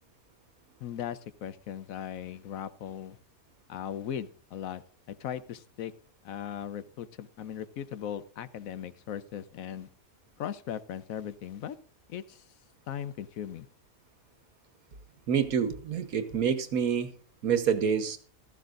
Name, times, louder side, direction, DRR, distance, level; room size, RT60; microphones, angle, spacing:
voice 1, 0.8-3.2 3.7-4.8 5.1-5.9 6.2-9.9 10.4-11.8 12.1-12.4 12.9-13.7, left 9 dB, 75° left, 14 dB, 1.1 m, -38 dB
voice 2, 15.3-17.1 17.4-18.2, right 7 dB, 90° right, 9 dB, 1.6 m, -27 dB
15.5 x 13.5 x 2.5 m, 0.41 s
omnidirectional pair, 1.5 m